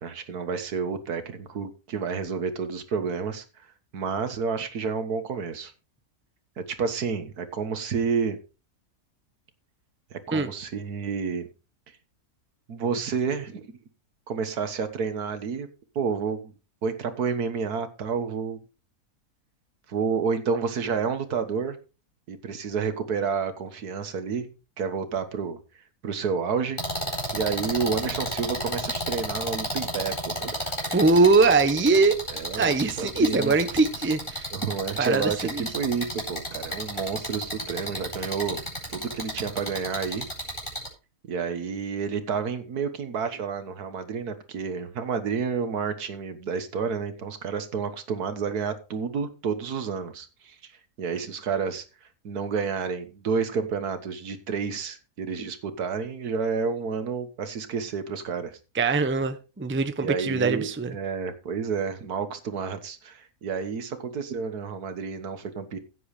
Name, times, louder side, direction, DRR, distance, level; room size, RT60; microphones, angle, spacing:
voice 1, 0.0-3.7 3.9-5.7 6.6-8.4 10.1-11.5 12.7-13.7 14.3-15.7 15.9-16.5 16.8-18.6 19.9-21.8 22.3-24.5 24.8-25.6 26.0-26.8 27.3-30.7 32.3-33.5 34.5-38.6 38.9-40.3 41.3-50.7 51.0-58.6 60.0-65.8, right 5 dB, 80° right, 10 dB, 1.8 m, -30 dB
sound 1, 26.8-40.9, equal, 15° left, 4.4 m, -32 dB
voice 2, 30.9-32.2 32.6-34.5 35.0-35.7 58.7-60.9, right 3 dB, 10° right, 10 dB, 0.6 m, -22 dB
15.5 x 7.8 x 3.3 m, 0.31 s
omnidirectional pair, 1.6 m